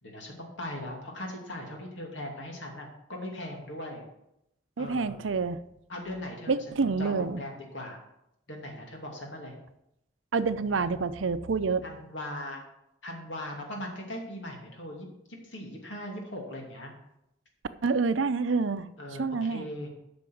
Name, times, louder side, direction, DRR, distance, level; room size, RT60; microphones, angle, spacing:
voice 1, 0.0-4.0 4.8-5.2 5.9-8.0 8.5-9.5 11.8-12.6 13.0-16.9 19.0-19.9, left 1 dB, 75° left, 0 dB, 2.6 m, -39 dB
voice 2, 4.8-5.6 6.5-7.4 10.3-11.8 17.8-19.7, right 4 dB, 80° right, 13 dB, 0.6 m, -28 dB
8.5 x 6.1 x 7.7 m, 0.83 s
head